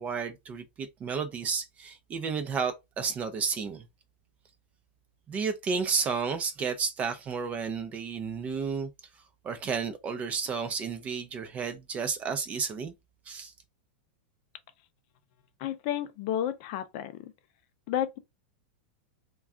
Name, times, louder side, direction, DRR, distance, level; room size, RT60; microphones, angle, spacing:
voice 1, 0.0-3.8 5.3-8.9 9.4-12.9 13.3-13.5, right 5 dB, 25° right, 0.4 m, -32 dB
voice 2, 15.6-17.3 17.9-18.2, left 11 dB, 50° left, 0.5 m, -31 dB
2.4 x 2.2 x 3.5 m
hypercardioid pair, 130°, 6 cm